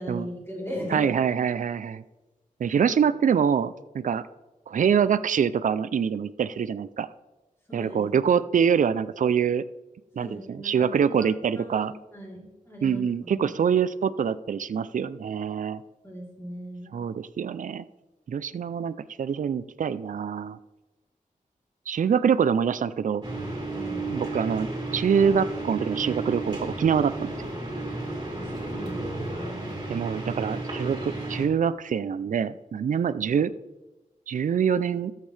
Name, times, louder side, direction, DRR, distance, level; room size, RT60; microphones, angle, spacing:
voice 1, 0.0-1.1 7.7-8.2 10.2-11.3 11.5-13.5 16.0-17.0 23.7-24.1 28.3-29.7, equal, 15° left, -5 dB, 3.4 m, -38 dB
voice 2, 0.9-2.0 2.6-4.2 4.7-7.1 7.7-9.6 10.2-11.9 12.8-15.8 16.9-17.8 18.3-20.6 21.9-23.2 24.1-27.3 29.9-33.5 34.3-35.1, right 7 dB, 70° right, 14 dB, 0.4 m, -25 dB
sound 1, 23.2-31.5, right 2 dB, 30° right, 3.0 m, -33 dB
13.5 x 7.4 x 3.3 m, 1.1 s
wide cardioid pair, 95°, 14 cm